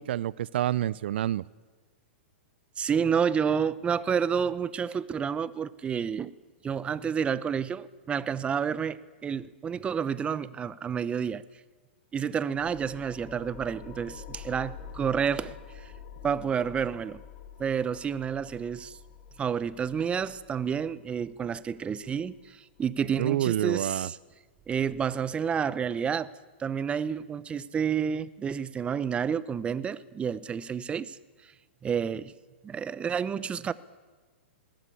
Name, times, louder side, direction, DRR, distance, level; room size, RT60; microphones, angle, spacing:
voice 1, 0.0-1.4 23.2-24.1, right 12 dB, 65° right, 21 dB, 0.6 m, -28 dB
voice 2, 2.8-6.3 6.6-11.4 12.1-15.9 16.2-17.2 17.6-19.0 19.4-24.2 24.7-26.3 26.6-31.5 31.8-32.3 32.6-33.7, right 7 dB, 20° right, 17 dB, 0.8 m, -30 dB
sound 1, 12.5-23.6, left 7 dB, 45° left, 3.5 m, -47 dB
20.5 x 17.0 x 8.5 m, 1.4 s
hypercardioid pair, 120°, 6 cm